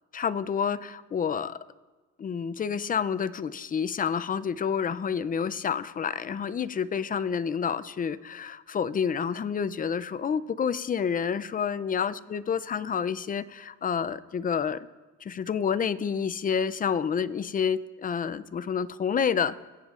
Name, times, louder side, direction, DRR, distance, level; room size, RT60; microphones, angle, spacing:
voice 1, 0.1-1.6 2.2-14.9 15.2-19.6, left 7 dB, 30° left, 15 dB, 0.4 m, -29 dB
22.5 x 8.1 x 2.4 m, 1.3 s
cardioid pair, 90°, 30 cm